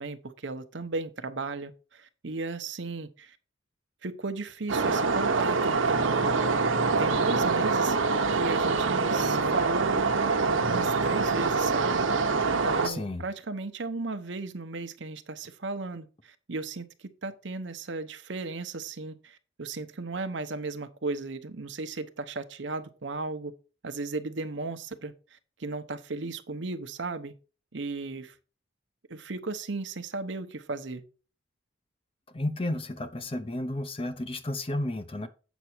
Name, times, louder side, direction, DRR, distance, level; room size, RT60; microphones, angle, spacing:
voice 1, 0.0-3.4 4.0-6.4 7.0-8.0 8.3-10.0 10.7-12.0 12.4-23.5 23.8-27.3 27.7-28.3 29.1-31.0, right 3 dB, 65° right, 0.9 m, -35 dB
sound 1, 4.7-12.9, right 4 dB, 90° right, 1.0 m, -25 dB
voice 2, 12.8-13.2 32.3-35.3, left 1 dB, 30° left, 0.7 m, -32 dB
8.1 x 6.0 x 4.5 m
head